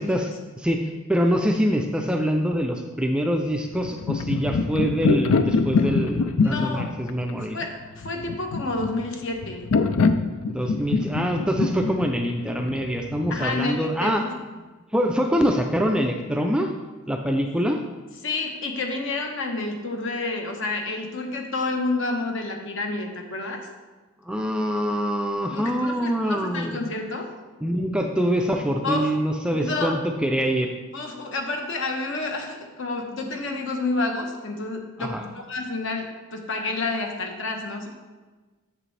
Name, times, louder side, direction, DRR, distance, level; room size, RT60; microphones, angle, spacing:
voice 1, 0.0-7.6 10.5-14.3 14.9-16.7 17.1-17.8 24.2-26.8 27.6-30.7 35.0-35.3, equal, 5° right, 3 dB, 0.3 m, -24 dB
sound 1, 3.7-13.4, left 4 dB, 80° left, 0.5 m, -24 dB
voice 2, 6.4-6.9 7.5-7.7 8.0-9.7 13.3-14.3 18.2-23.7 25.5-27.3 28.8-29.1 29.5-30.0 30.9-37.9, left 3 dB, 60° left, 2 dB, 1.1 m, -29 dB
7.5 x 7.5 x 3.3 m, 1.3 s
head